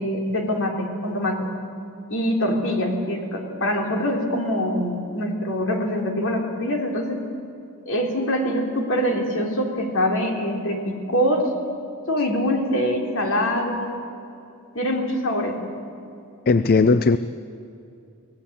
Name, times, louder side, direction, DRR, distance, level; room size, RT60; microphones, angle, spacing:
voice 1, 0.0-1.5 2.1-7.2 7.9-11.5 12.1-14.0 14.7-15.8, equal, 60° left, 2 dB, 3.4 m, -24 dB
voice 2, 16.5-17.2, left 4 dB, 45° left, 13 dB, 0.5 m, -17 dB
24.5 x 17.5 x 8.6 m, 2.5 s
head